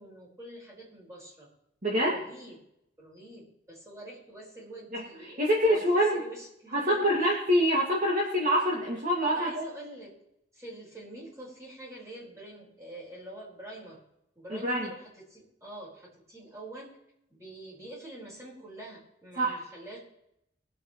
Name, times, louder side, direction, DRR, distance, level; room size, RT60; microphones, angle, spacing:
voice 1, 0.0-1.5 2.1-2.6 3.0-7.3 9.3-10.1 10.5-14.0 14.3-16.9 17.3-20.0, right 1 dB, 15° right, -4 dB, 5.0 m, -46 dB
voice 2, 1.8-2.2 4.9-6.2 6.7-9.6 14.5-14.9 19.4-19.6, equal, 40° right, -3 dB, 2.1 m, -26 dB
22.5 x 8.3 x 3.1 m, 0.80 s
head